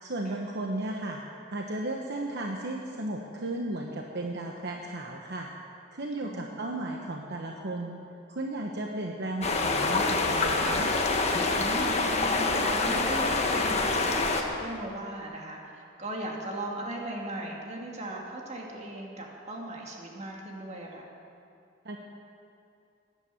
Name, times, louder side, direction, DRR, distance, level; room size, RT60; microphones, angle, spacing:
voice 1, 0.0-1.2 1.5-5.5 5.9-8.0 8.3-10.9 21.8-22.0, right 2 dB, 60° right, 1 dB, 1.0 m, -34 dB
voice 2, 6.2-6.5 11.5-21.0, right 1 dB, 35° right, -1 dB, 2.4 m, -38 dB
sound 1, 9.4-14.4, left 3 dB, 35° left, 1.4 m, -26 dB
16.0 x 11.0 x 7.0 m, 2.5 s
head